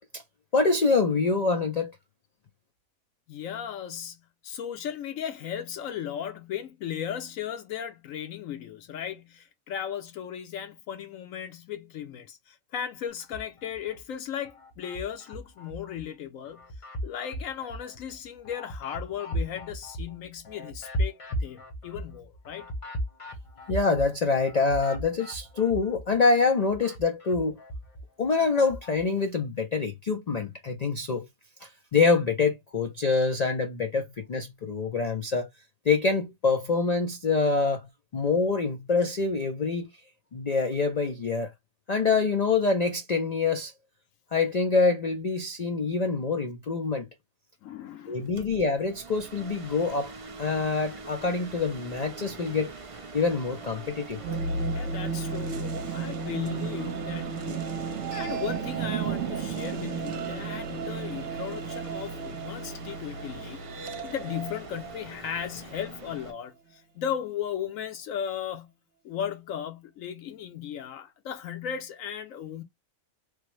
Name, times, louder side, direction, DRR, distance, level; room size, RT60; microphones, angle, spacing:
voice 1, 0.5-1.9 23.7-27.6 28.2-31.3 31.6-35.5 35.9-37.9 38.1-39.9 40.3-41.5 41.9-43.7 44.3-47.1 48.1-50.1 50.4-52.7 53.1-54.2, left 4 dB, 90° left, 0.3 m, -25 dB
voice 2, 3.3-16.6 17.0-22.7 47.6-48.3 54.7-57.7 58.1-68.7 69.0-72.6, left 9 dB, 75° left, 1.0 m, -36 dB
sound 1, 13.2-14.0 14.4-16.0 16.4-26.2 26.4-29.0, equal, 35° left, 0.6 m, -37 dB
sound 2, 48.1-66.3, right 5 dB, 45° right, 0.4 m, -44 dB
sound 3, 54.2-66.0, right 5 dB, 60° right, 0.9 m, -34 dB
3.3 x 2.1 x 3.0 m
omnidirectional pair, 1.5 m